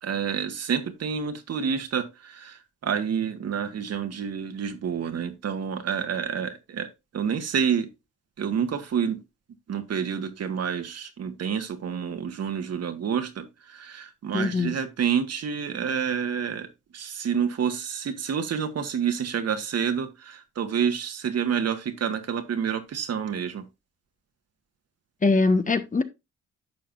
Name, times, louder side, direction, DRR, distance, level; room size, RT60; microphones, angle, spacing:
voice 1, 0.0-6.9 7.1-7.9 8.4-9.2 9.7-16.7 16.9-23.6, right 7 dB, 55° right, 1.7 m, -28 dB
voice 2, 14.3-14.7 25.2-26.0, left 3 dB, 25° left, 1.3 m, -22 dB
11.0 x 6.6 x 2.5 m
cardioid pair, 90°, 30 cm